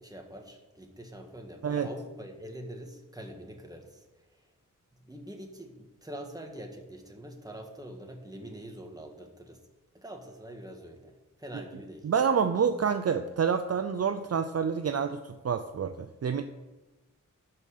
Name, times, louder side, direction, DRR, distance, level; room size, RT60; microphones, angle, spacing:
voice 1, 0.0-4.5 5.0-9.6 9.9-11.1 11.4-12.1, right 1 dB, 10° right, 3 dB, 1.7 m, -44 dB
voice 2, 12.0-16.4, right 6 dB, 50° right, 8 dB, 0.5 m, -28 dB
12.0 x 5.5 x 6.6 m, 1.1 s
wide cardioid pair, 95°, 33 cm